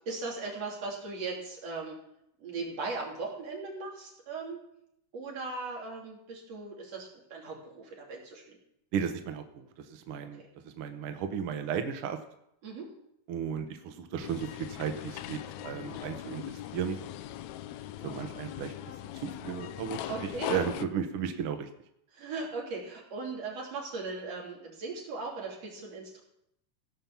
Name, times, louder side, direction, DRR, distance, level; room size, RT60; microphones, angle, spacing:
voice 1, 0.0-2.0 2.4-4.6 5.1-8.6 10.4-10.5 12.6-12.9 20.1-20.5 22.1-26.2, right 3 dB, 55° right, -3 dB, 4.0 m, -38 dB
voice 2, 8.9-12.2 13.3-17.0 18.0-18.7 19.2-20.0 20.5-21.7, right 7 dB, 75° right, 7 dB, 1.3 m, -34 dB
sound 1, 14.2-20.9, left 12 dB, 80° left, 1.7 m, -40 dB
16.5 x 5.8 x 7.2 m, 0.79 s
omnidirectional pair, 3.7 m